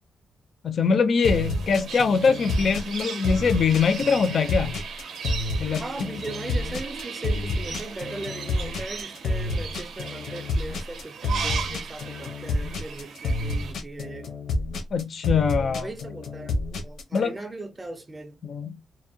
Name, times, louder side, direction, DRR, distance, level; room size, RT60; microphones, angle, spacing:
voice 1, 0.6-4.7 5.6-5.8 14.9-15.9 17.1-17.4 18.4-18.8, left 5 dB, 45° left, 0.4 m, -23 dB
sound 1, 1.2-17.2, left 2 dB, 85° left, 0.7 m, -29 dB
sound 2, 1.2-13.7, right 6 dB, 70° right, 0.5 m, -37 dB
voice 2, 5.8-14.3 15.6-18.4, right 2 dB, 15° right, 0.4 m, -38 dB
2.6 x 2.0 x 2.7 m
wide cardioid pair, 165°, 0 cm